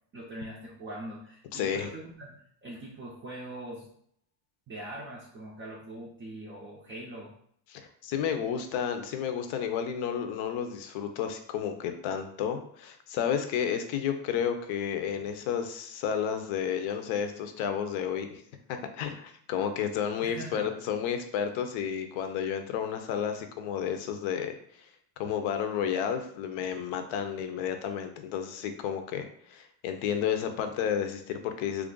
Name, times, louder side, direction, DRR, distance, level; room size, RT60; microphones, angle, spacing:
voice 1, 0.1-3.9 4.7-7.3 20.2-20.8, right 1 dB, 25° right, -4 dB, 0.4 m, -42 dB
voice 2, 1.5-1.9 7.7-18.4 18.7-24.9 25.2-31.9, left 8 dB, 75° left, 7 dB, 0.7 m, -31 dB
3.1 x 2.5 x 3.7 m, 0.65 s
cardioid pair, 155°, 48 cm